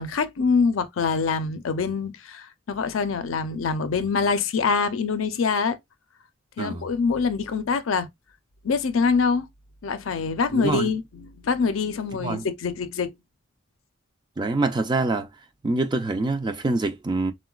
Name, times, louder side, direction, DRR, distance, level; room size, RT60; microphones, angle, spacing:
voice 1, 0.0-5.8 6.6-8.1 8.6-9.5 9.8-13.1, left 5 dB, 75° left, 0.5 m, -25 dB
voice 2, 10.5-10.9 12.2-12.5 14.4-15.3 15.6-17.3, right 2 dB, 20° right, 0.3 m, -25 dB
3.7 x 2.1 x 2.2 m
head